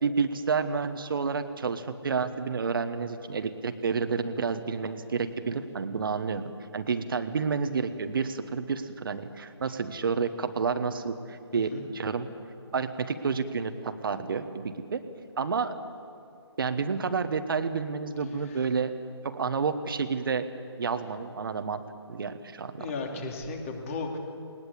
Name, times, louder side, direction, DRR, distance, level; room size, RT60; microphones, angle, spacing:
voice 1, 0.0-12.3 12.7-15.0 15.4-15.7 16.6-18.9 19.2-20.5 20.8-21.8 22.1-23.2, right 5 dB, 55° right, 9 dB, 1.4 m, -30 dB
voice 2, 22.8-24.2, left 3 dB, 30° left, 3 dB, 2.7 m, -34 dB
20.0 x 19.5 x 8.5 m, 2.5 s
figure-of-eight pair, 150°, 14 cm